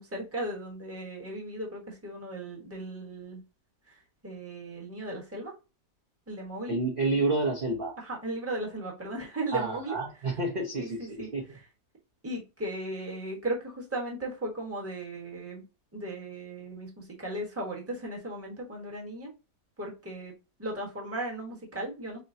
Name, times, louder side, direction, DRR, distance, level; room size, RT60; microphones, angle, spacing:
voice 1, 0.0-3.4 3.9-4.0 4.2-5.5 6.3-6.8 8.0-10.0 10.8-10.9 11.2-11.6 12.2-15.6 15.9-19.3 19.8-20.3 20.6-22.2, right 1 dB, 10° right, -1 dB, 1.0 m, -36 dB
voice 2, 6.7-8.0 9.5-11.6, right 2 dB, 40° right, -2 dB, 0.8 m, -29 dB
5.5 x 2.2 x 2.6 m, 0.29 s
omnidirectional pair, 1.8 m